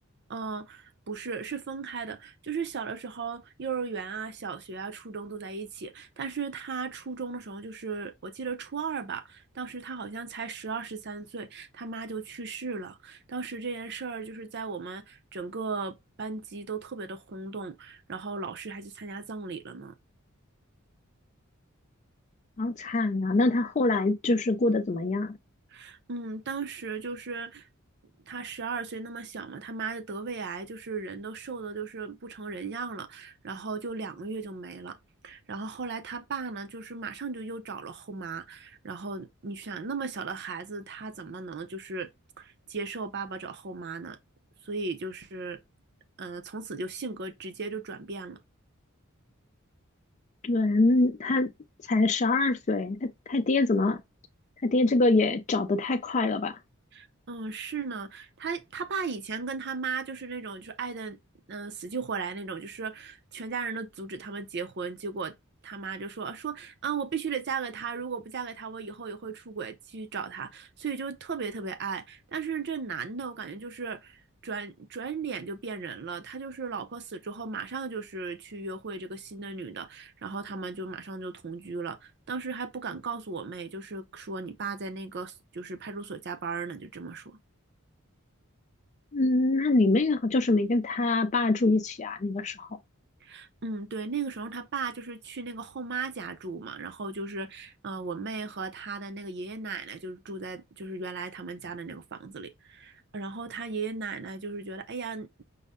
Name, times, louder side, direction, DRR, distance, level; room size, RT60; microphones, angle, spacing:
voice 1, 0.3-19.9 25.7-27.7 28.3-35.0 35.2-42.1 42.4-44.2 44.6-45.6 46.2-48.4 56.9-61.2 61.5-65.3 65.6-87.4 93.2-105.4, right 4 dB, 55° right, 0.6 m, -36 dB
voice 2, 22.6-25.3 50.4-51.5 51.9-54.0 54.6-56.6 89.1-92.7, left 2 dB, 35° left, 0.4 m, -24 dB
5.4 x 2.1 x 3.5 m
head